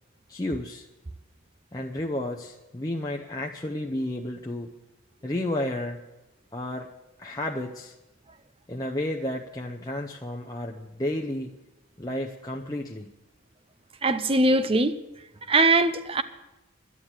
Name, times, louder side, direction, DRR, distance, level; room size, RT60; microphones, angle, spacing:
voice 1, 0.3-0.9 1.7-4.7 5.2-6.0 6.5-6.9 7.2-7.9 8.7-11.5 12.0-13.1, left 1 dB, 20° left, 0.7 m, -32 dB
voice 2, 14.0-14.9 15.5-16.2, right 2 dB, 25° right, 0.6 m, -21 dB
12.0 x 9.7 x 7.4 m
head